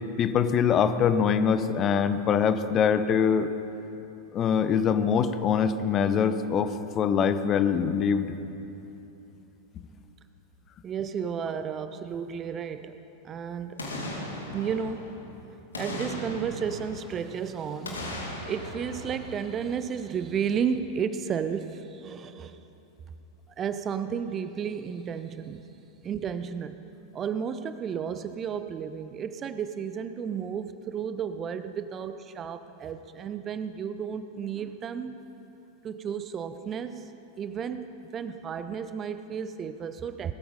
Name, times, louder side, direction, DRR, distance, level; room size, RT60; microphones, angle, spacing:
voice 1, 0.2-3.5 4.3-8.3, left 7 dB, 30° left, 11 dB, 0.8 m, -23 dB
voice 2, 10.8-13.0 13.2-13.9 14.5-15.1 15.8-22.6 23.6-25.6 26.0-26.8 27.1-35.2 35.8-40.3, right 7 dB, 25° right, 11 dB, 0.7 m, -33 dB
Boom, 13.8-15.3 15.7-17.4 17.8-20.1 20.4-20.5, left 1 dB, 75° left, 2.6 m, -38 dB
19.5 x 13.5 x 5.4 m, 2.9 s
figure-of-eight pair, 90°, 0 cm